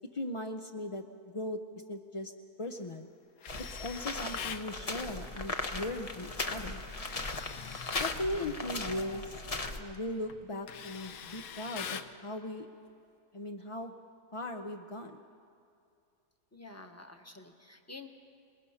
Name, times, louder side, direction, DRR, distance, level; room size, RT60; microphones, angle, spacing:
voice 1, 0.1-1.6 1.9-2.3 2.6-3.1 3.6-6.8 8.0-9.4 9.8-12.7 13.3-13.9 14.3-15.2, left 1 dB, 45° left, 4 dB, 0.4 m, -38 dB
Tools, 3.4-4.7 6.9-8.2 9.7-10.0 10.3-12.2, left 8 dB, 70° left, 1.1 m, -42 dB
sound 1, 3.5-9.8, left 2 dB, 30° left, 0.8 m, -38 dB
voice 2, 16.5-18.1, left 3 dB, 10° left, 4 dB, 1.0 m, -49 dB
28.0 x 20.0 x 5.6 m, 2.5 s
omnidirectional pair, 1.6 m